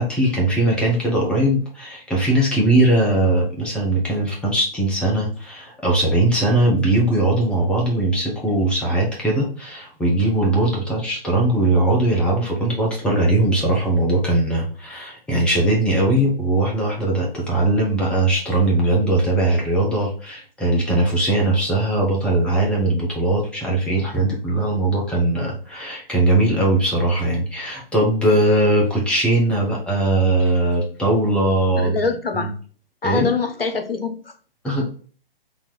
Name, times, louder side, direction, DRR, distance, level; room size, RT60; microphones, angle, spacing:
voice 1, 0.0-32.0 32.3-32.5 33.0-33.3 34.6-34.8, right 2 dB, 5° left, 0.7 m, -20 dB
voice 2, 31.8-32.5 33.0-34.2, left 4 dB, 75° left, 1.0 m, -24 dB
3.9 x 2.9 x 4.4 m
figure-of-eight pair, 125°, 29 cm